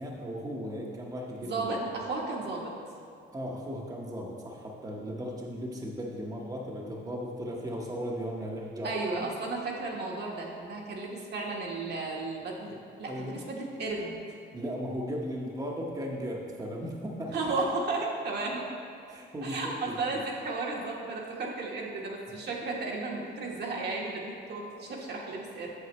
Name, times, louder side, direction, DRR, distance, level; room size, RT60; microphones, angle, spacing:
voice 1, 0.0-1.7 3.3-9.0 13.0-13.4 14.5-17.4 19.1-20.3, equal, 20° right, -2 dB, 0.9 m, -36 dB
voice 2, 1.4-2.7 8.8-14.2 17.3-18.6 19.4-25.7, right 3 dB, 55° right, -2 dB, 1.3 m, -34 dB
7.9 x 6.8 x 3.1 m, 2.6 s
cardioid pair, 90°, 20 cm